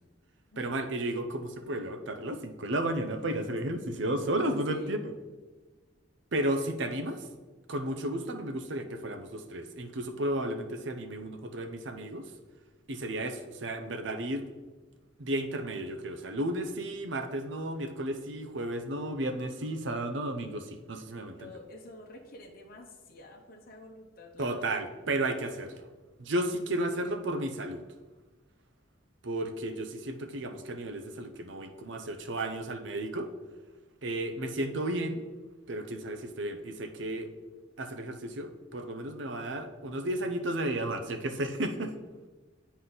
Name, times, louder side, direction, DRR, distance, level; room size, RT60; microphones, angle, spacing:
voice 1, 0.6-5.1 6.3-7.3 7.7-12.3 12.9-14.4 15.2-21.5 24.4-25.8 26.2-27.8 29.2-33.3 34.0-35.2 35.7-37.3 37.8-41.9, right 1 dB, 70° right, 7 dB, 0.7 m, -33 dB
voice 2, 4.5-5.0 21.2-24.9 26.4-27.4, left 1 dB, 50° left, 0 dB, 0.9 m, -50 dB
9.2 x 4.1 x 4.0 m, 1.3 s
head